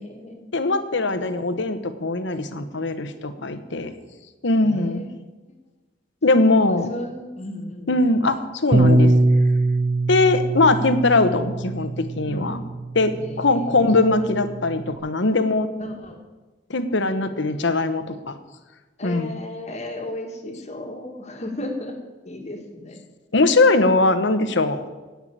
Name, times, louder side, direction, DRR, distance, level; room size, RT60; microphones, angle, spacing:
voice 1, 0.0-0.5 4.6-5.1 6.4-7.9 12.3-12.6 13.1-13.8 15.8-16.2 19.0-22.0 22.3-23.0, left 1 dB, 35° left, 3 dB, 1.8 m, -35 dB
voice 2, 0.5-3.9 4.4-5.1 6.2-7.0 7.9-9.1 10.1-12.6 12.9-15.7 16.7-18.4 19.0-19.4 23.3-24.8, left 2 dB, 70° left, 10 dB, 1.1 m, -21 dB
Bass guitar, 8.7-15.0, right 2 dB, 35° right, 0.8 m, -22 dB
17.5 x 5.9 x 8.7 m, 1.2 s
head